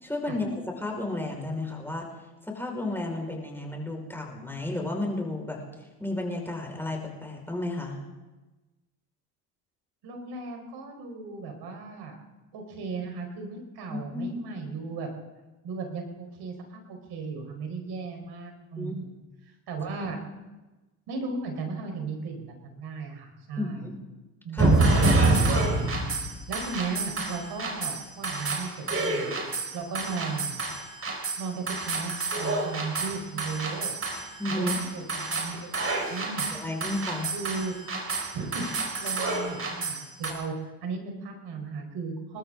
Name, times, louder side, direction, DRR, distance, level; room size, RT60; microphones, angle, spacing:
voice 1, 0.0-0.5 0.8-2.0 2.5-5.6 6.0-8.0 13.9-14.4 18.7-18.9 23.6-24.0 24.5-24.7 34.4-34.9 36.5-37.3, left 2 dB, 5° left, 0 dB, 5.2 m, -32 dB
voice 2, 10.0-12.2 12.5-15.1 15.6-19.2 19.7-20.2 21.1-23.9 24.4-25.0 26.5-29.4 29.7-30.6 31.4-33.9 34.5-35.7 36.1-36.4 37.3-37.7 38.3-42.4, right 4 dB, 55° right, 3 dB, 4.7 m, -36 dB
sound 1, 24.6-40.3, right 2 dB, 30° right, 4.8 m, -28 dB
28.0 x 13.5 x 3.8 m, 1.1 s
hypercardioid pair, 75°, 45 cm